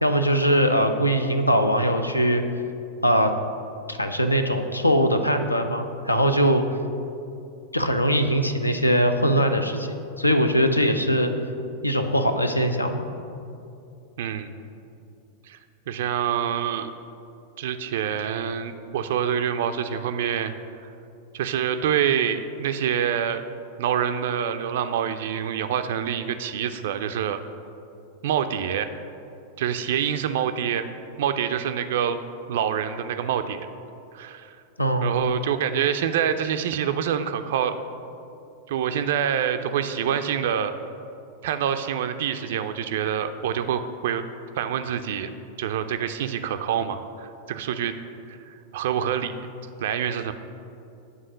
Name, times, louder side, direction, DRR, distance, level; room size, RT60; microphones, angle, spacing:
voice 1, 0.0-2.4 3.0-3.3 3.9-6.8 7.7-11.3 11.8-13.1 34.8-35.2, equal, 85° left, 7 dB, 0.5 m, -21 dB
voice 2, 14.2-14.6 15.4-15.6 15.9-16.9 17.6-20.5 21.3-23.4 23.8-27.4 28.2-28.9 29.6-30.8 31.2-32.2 32.5-33.7 34.1-34.6 35.0-37.7 38.7-40.7 41.4-44.2 44.6-45.3 45.6-47.9 48.3-49.3 49.8-50.3, right 9 dB, 55° right, 8 dB, 0.3 m, -26 dB
8.3 x 3.7 x 6.4 m, 2.6 s
figure-of-eight pair, 90°, 0 cm